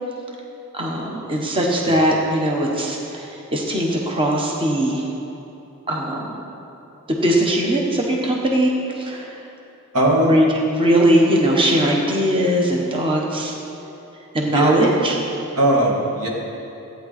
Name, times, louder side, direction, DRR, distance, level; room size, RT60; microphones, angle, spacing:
voice 1, 0.7-5.1 5.9-6.4 7.1-9.4 10.2-13.5 14.3-15.2, right 1 dB, 25° right, -1 dB, 1.1 m, -20 dB
voice 2, 9.9-10.4 14.4-14.7 15.6-16.3, right 1 dB, 85° right, -2 dB, 2.1 m, -18 dB
14.5 x 9.3 x 4.2 m, 3.0 s
head